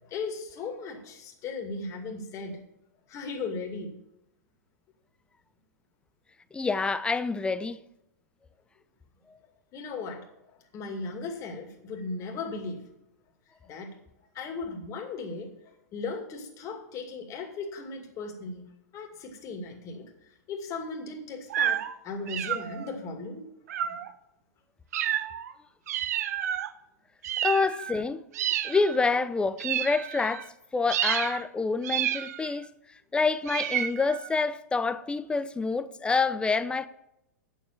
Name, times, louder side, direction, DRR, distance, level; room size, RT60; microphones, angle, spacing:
voice 1, 0.0-2.7 3.1-4.0 9.7-12.9 13.6-14.0 14.3-15.5 15.9-18.7 18.9-20.1 20.5-23.5 23.8-24.0 25.2-25.3, left 3 dB, 35° left, 2.4 m, -37 dB
voice 2, 6.5-7.8 27.4-28.2 28.6-30.5 30.7-32.7 33.1-36.9, left 4 dB, 10° left, 0.5 m, -27 dB
sound 1, 21.5-21.9 22.3-22.9 23.7-24.1 24.9-25.5 25.9-26.7 27.2-28.0 28.3-29.0 29.6-30.5 30.9-31.4 31.8-32.6 33.5-34.4, right 11 dB, 65° right, 0.7 m, -30 dB
8.9 x 7.2 x 7.4 m
hypercardioid pair, 110°, 9 cm